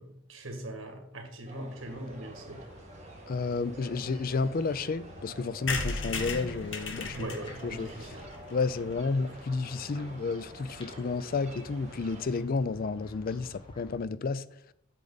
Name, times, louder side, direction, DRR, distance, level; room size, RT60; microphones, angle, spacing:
voice 1, 0.0-2.6 7.1-8.2, right 1 dB, 85° right, 2.0 m, -41 dB
sound 1, 1.5-12.4, right 2 dB, 35° right, 1.7 m, -49 dB
sound 2, 1.7-14.0, equal, 25° left, 1.7 m, -51 dB
voice 2, 3.3-7.3 7.6-7.9 8.5-14.4, left 4 dB, 45° left, 0.4 m, -31 dB
sound 3, 5.7-9.4 9.8-9.9 10.1-10.2 10.4-10.5 10.7-10.9, left 3 dB, 70° left, 1.1 m, -36 dB
8.5 x 6.5 x 4.0 m
head